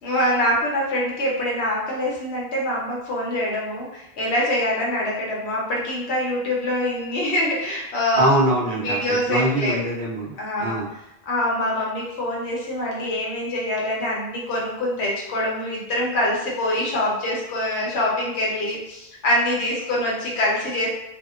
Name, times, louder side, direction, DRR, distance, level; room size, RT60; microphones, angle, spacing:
voice 1, 0.0-8.3 8.8-9.8 10.4-10.8 11.3-20.9, left 1 dB, 90° left, -4 dB, 1.0 m, -24 dB
voice 2, 8.1-9.0 9.3-10.9, right 1 dB, 60° right, -4 dB, 0.8 m, -23 dB
2.7 x 2.1 x 2.3 m, 0.86 s
omnidirectional pair, 1.1 m